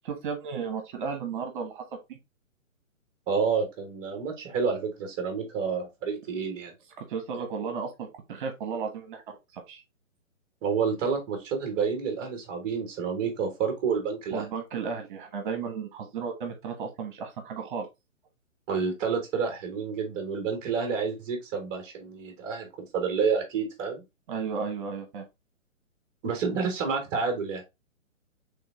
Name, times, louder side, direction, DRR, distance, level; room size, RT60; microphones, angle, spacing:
voice 1, 0.0-1.8 2.1-2.2 7.0-9.8 14.3-17.9 24.3-25.2, right 5 dB, 40° right, 1.3 m, -34 dB
voice 2, 3.3-6.7 10.6-14.4 18.7-24.0 26.2-27.6, right 5 dB, 20° right, 1.1 m, -29 dB
3.8 x 3.5 x 3.4 m
hypercardioid pair, 155°, 40 cm